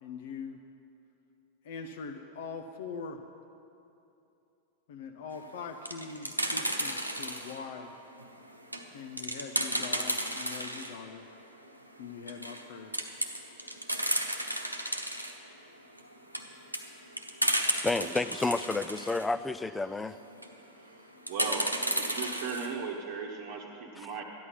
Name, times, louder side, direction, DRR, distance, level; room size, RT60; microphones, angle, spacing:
voice 1, 0.0-0.6 1.6-3.2 4.9-7.9 8.9-11.2 12.0-13.1, left 5 dB, 55° left, 5 dB, 0.6 m, -42 dB
sound 1, 5.6-7.6 8.1-10.9 11.3-11.4 11.7-11.8 12.2-12.6 12.9-15.3 16.0-19.3 20.2-20.6 21.3-22.7, right 1 dB, 90° right, 1.0 m, -33 dB
voice 2, 17.8-20.2, left 3 dB, 10° left, 14 dB, 0.4 m, -30 dB
voice 3, 21.3-24.2, right 5 dB, 50° right, -2 dB, 1.1 m, -37 dB
13.5 x 11.0 x 5.8 m, 2.8 s
figure-of-eight pair, 90°, 0 cm